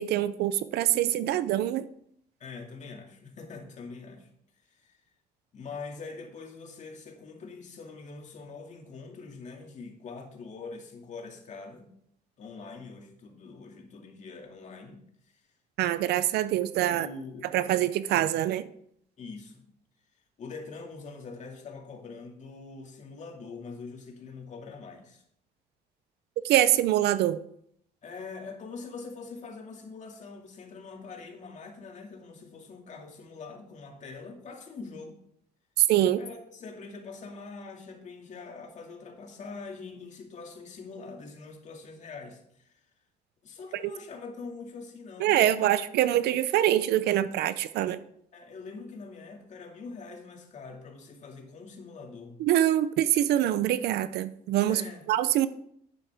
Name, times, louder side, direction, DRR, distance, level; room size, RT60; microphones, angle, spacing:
voice 1, 0.0-1.9 15.8-17.1 17.5-18.7 26.4-27.4 35.8-36.2 45.2-48.0 52.4-54.8 55.1-55.5, right 12 dB, 75° right, 14 dB, 0.6 m, -24 dB
voice 2, 2.4-4.3 4.7-5.0 5.5-11.9 12.4-15.4 16.9-17.8 19.2-19.6 20.4-25.2 28.0-35.2 36.2-42.8 43.4-45.8 48.3-52.4 54.7-55.1, left 4 dB, 45° left, 2 dB, 2.2 m, -44 dB
11.0 x 9.1 x 3.5 m, 0.69 s
cardioid pair, 110°, 17 cm